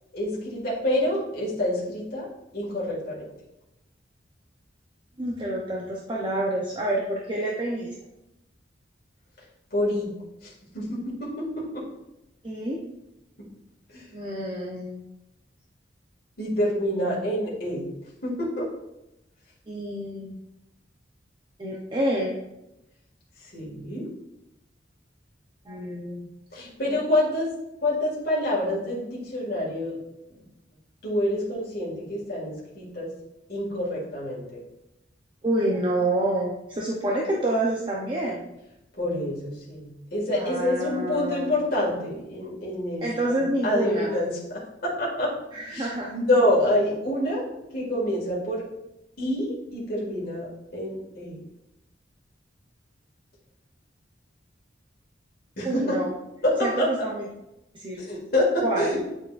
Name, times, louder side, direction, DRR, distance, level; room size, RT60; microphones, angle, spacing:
voice 1, 0.1-2.3 2.5-3.2 9.7-10.1 10.4-11.7 13.9-14.0 16.4-17.9 18.2-18.7 23.5-24.1 26.5-27.5 27.8-30.0 31.0-33.1 33.5-34.6 39.0-45.3 45.7-47.4 47.7-48.6 49.2-51.4 55.6-56.0 56.4-56.9 58.1-59.0, left 1 dB, 55° left, -6 dB, 1.9 m, -27 dB
voice 2, 5.2-7.9 12.4-12.8 14.1-15.0 16.9-17.2 19.7-20.4 21.6-22.3 25.7-26.3 35.4-38.5 40.3-41.5 43.0-44.2 45.5-46.1 55.6-56.1 56.6-57.3 57.7-58.1 58.6-58.9, right 1 dB, 25° right, -3 dB, 0.7 m, -28 dB
8.8 x 4.4 x 2.5 m, 0.90 s
head